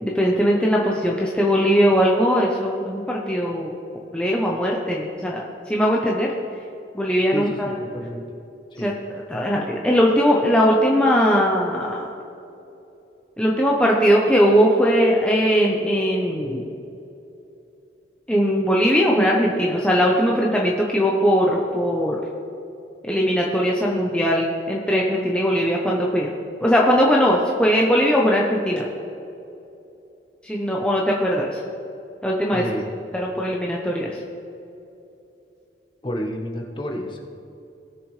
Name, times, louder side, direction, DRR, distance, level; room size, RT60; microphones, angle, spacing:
voice 1, 0.0-3.7 4.1-6.3 6.9-7.7 8.8-8.9 9.3-12.1 13.4-16.7 18.3-22.2 23.0-26.3 26.6-28.9 30.4-31.6 32.2-32.6 33.1-34.2, equal, 5° left, -3 dB, 0.8 m, -20 dB
voice 2, 7.3-8.2 8.7-8.9 32.5-32.9 36.0-37.2, equal, 25° left, 1 dB, 1.2 m, -30 dB
18.5 x 6.8 x 3.3 m, 2.9 s
head